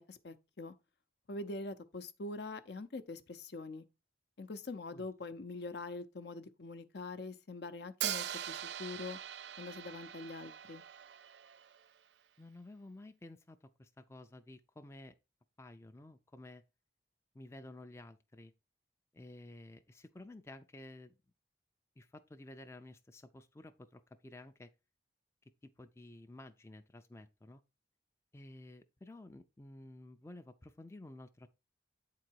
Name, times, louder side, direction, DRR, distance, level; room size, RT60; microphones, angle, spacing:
voice 1, 0.1-0.7 1.3-3.8 4.4-9.2 9.6-10.8, left 3 dB, 65° left, 0.6 m, -44 dB
Hi-hat, 8.0-12.0, right 11 dB, 70° right, 0.4 m, -42 dB
voice 2, 12.4-15.1 15.6-16.6 17.3-18.5 19.1-21.1 22.0-24.7 25.8-27.6 28.3-31.5, left 2 dB, 15° left, 0.4 m, -53 dB
8.5 x 3.9 x 4.5 m
head